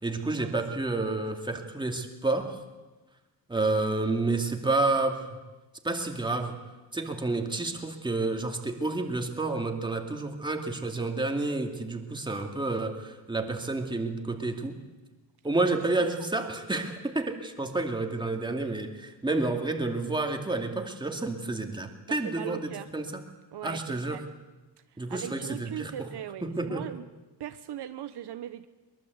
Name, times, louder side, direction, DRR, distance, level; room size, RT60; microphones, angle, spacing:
voice 1, 0.0-2.6 3.5-5.2 5.8-6.6 6.9-14.8 15.4-23.2 23.6-24.2 25.0-25.9 26.4-26.8, right 2 dB, 10° right, 4 dB, 2.5 m, -30 dB
voice 2, 22.1-22.9 23.5-24.3 25.1-27.0 27.4-28.7, right 11 dB, 70° right, 10 dB, 1.1 m, -39 dB
23.0 x 22.5 x 8.2 m, 1.2 s
wide cardioid pair, 145°, 42 cm